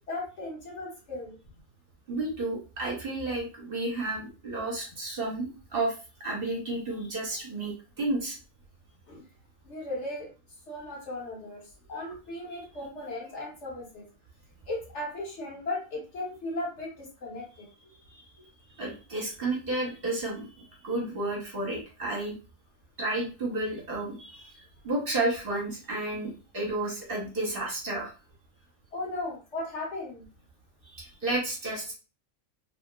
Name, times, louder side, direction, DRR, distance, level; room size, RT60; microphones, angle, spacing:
voice 1, 0.1-1.4 9.1-9.2 9.6-10.3 10.7-11.6 11.9-14.0 14.7-17.7 28.9-30.2, left 2 dB, 65° left, -2 dB, 1.3 m, -36 dB
voice 2, 2.1-5.9 6.2-8.4 18.1-18.5 18.8-20.5 20.8-22.3 23.0-28.1 30.8-31.9, right 2 dB, 50° right, -2 dB, 1.0 m, -32 dB
2.9 x 2.8 x 2.2 m, 0.33 s
omnidirectional pair, 1.3 m